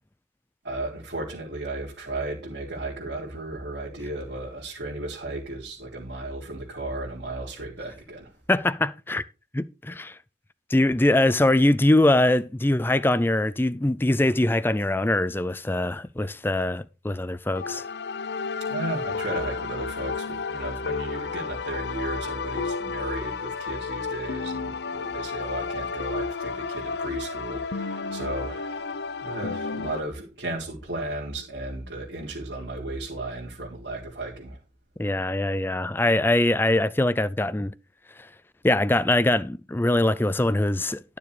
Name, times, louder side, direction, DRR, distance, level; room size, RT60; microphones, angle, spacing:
voice 1, 0.6-8.3 18.7-29.0 29.2-34.6, right 2 dB, 85° right, 3.8 m, -34 dB
voice 2, 8.5-9.2 9.5-10.2 10.7-17.8 35.0-37.7 38.6-41.2, left 1 dB, 15° left, 0.4 m, -22 dB
sound 1, 17.5-30.0, left 4 dB, 70° left, 0.7 m, -32 dB
12.0 x 7.0 x 4.9 m
head